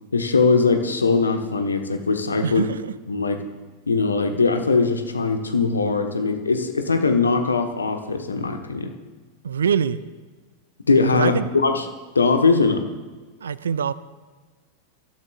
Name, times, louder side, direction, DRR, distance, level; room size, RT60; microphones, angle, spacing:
voice 1, 0.1-2.7 3.1-3.4 3.9-8.9 10.9-11.8 12.1-12.8, left 4 dB, 75° left, 5 dB, 1.2 m, -20 dB
voice 2, 2.4-2.9 9.4-10.0 11.1-11.5 13.4-13.9, right 7 dB, 70° right, 17 dB, 0.5 m, -24 dB
23.0 x 13.5 x 2.4 m, 1.4 s
figure-of-eight pair, 90°, 0 cm